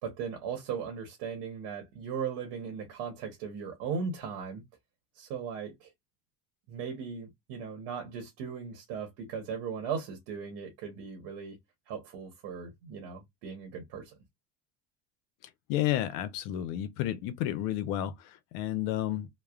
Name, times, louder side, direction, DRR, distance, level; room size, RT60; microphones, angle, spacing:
voice 1, 0.0-4.6 5.1-5.9 6.7-11.6 11.9-14.1, right 6 dB, 80° right, 1.1 m, -38 dB
voice 2, 15.7-19.3, left 12 dB, 85° left, 0.7 m, -31 dB
3.1 x 2.0 x 2.3 m
cardioid pair, 130°, 41 cm